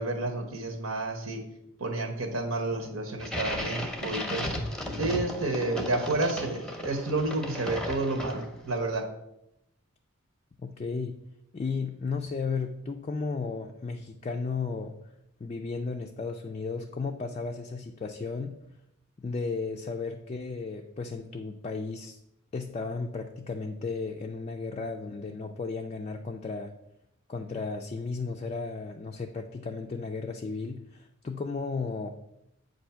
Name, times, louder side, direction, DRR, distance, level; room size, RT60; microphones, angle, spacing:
voice 1, 0.0-1.4 1.8-4.5 5.0-9.1, right 2 dB, 80° right, 3 dB, 1.1 m, -30 dB
sound 1, 3.2-8.7, left 1 dB, 5° left, 0.7 m, -35 dB
voice 2, 10.6-11.2 11.5-15.0 15.4-18.6 19.2-22.2 22.5-26.7 27.3-32.1, left 4 dB, 30° left, 3 dB, 0.3 m, -34 dB
7.7 x 2.6 x 5.6 m, 0.83 s
head